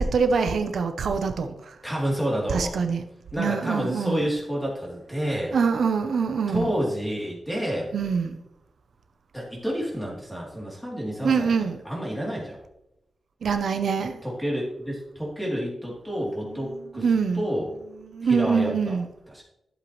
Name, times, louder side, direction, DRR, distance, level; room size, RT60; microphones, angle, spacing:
voice 1, 0.0-1.7 2.5-3.0 3.4-4.2 5.5-6.7 7.9-8.4 11.2-11.8 13.4-14.2 16.9-17.4 18.1-19.1, right 5 dB, 75° right, 0.7 m, -24 dB
voice 2, 1.8-2.8 3.3-5.6 6.5-7.9 9.3-11.5 11.8-12.6 14.2-17.1 17.3-17.7 18.2-19.0 19.3-19.4, equal, 5° left, 3.2 m, -29 dB
11.5 x 7.9 x 3.2 m
wide cardioid pair, 140°, 0 cm